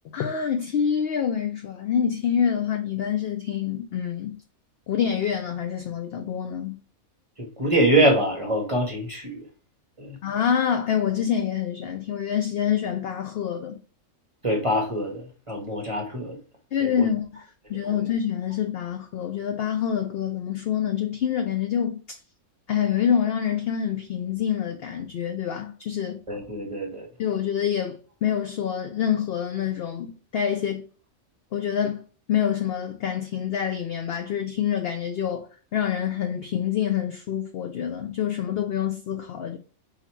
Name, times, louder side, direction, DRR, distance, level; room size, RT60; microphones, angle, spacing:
voice 1, 0.1-4.4 4.9-6.8 10.2-13.8 16.7-22.2 22.7-26.2 27.2-30.9 31.5-39.6, left 8 dB, 65° left, 0.6 m, -26 dB
voice 2, 7.4-9.4 10.0-10.2 14.4-16.4 16.8-17.1 17.8-17.9 26.3-27.1, right 1 dB, 30° right, 0.7 m, -24 dB
4.0 x 2.8 x 4.3 m
omnidirectional pair, 1.4 m